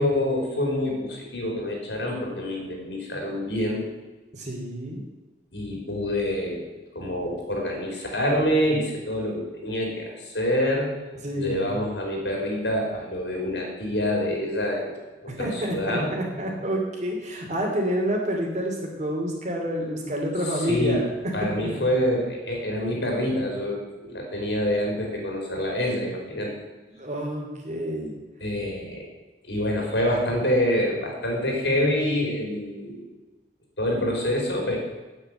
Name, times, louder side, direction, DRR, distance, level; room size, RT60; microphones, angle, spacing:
voice 1, 0.0-3.8 5.5-6.7 6.9-10.9 11.3-16.1 20.7-21.0 21.3-26.5 28.4-29.1 29.4-33.1 33.8-34.8, left 1 dB, 80° left, 0 dB, 4.0 m, -26 dB
voice 2, 4.3-5.0 11.2-11.7 15.3-21.9 26.9-28.2, equal, 40° right, 0 dB, 2.7 m, -28 dB
8.5 x 8.2 x 8.8 m, 1.2 s
head